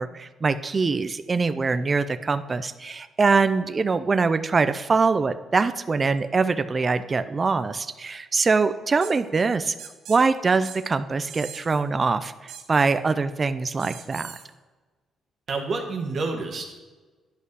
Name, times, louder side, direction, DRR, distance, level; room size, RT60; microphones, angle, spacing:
voice 1, 0.0-9.7 10.1-14.3, right 4 dB, 35° right, 11 dB, 0.4 m, -23 dB
sound 1, 9.0-9.1 9.8-10.2 10.6-10.8 11.3-11.8 12.5-12.9 13.8-14.5, right 9 dB, 85° right, 0.9 m, -41 dB
voice 2, 15.5-16.8, right 3 dB, 55° right, 2 dB, 1.4 m, -29 dB
10.0 x 5.5 x 4.8 m, 1.3 s
cardioid pair, 90°, 0 cm